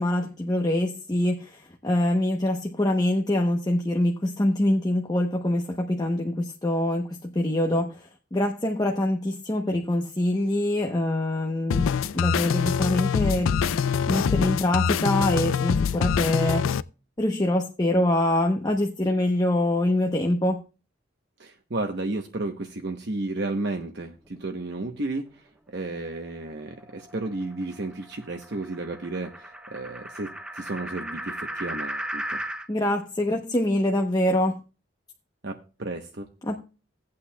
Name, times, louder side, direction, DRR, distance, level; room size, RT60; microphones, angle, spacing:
voice 1, 0.0-11.9 12.1-13.6 14.1-16.7 17.2-20.6 32.7-34.6 36.5-36.6, left 1 dB, 20° left, 0.8 m, -24 dB
sound 1, 11.7-16.8, left 6 dB, 90° left, 0.4 m, -24 dB
voice 2, 21.4-32.4 35.4-36.3, right 2 dB, 55° right, 0.9 m, -33 dB
sound 2, 25.9-32.7, right 1 dB, 5° right, 0.7 m, -37 dB
17.0 x 8.6 x 2.3 m
head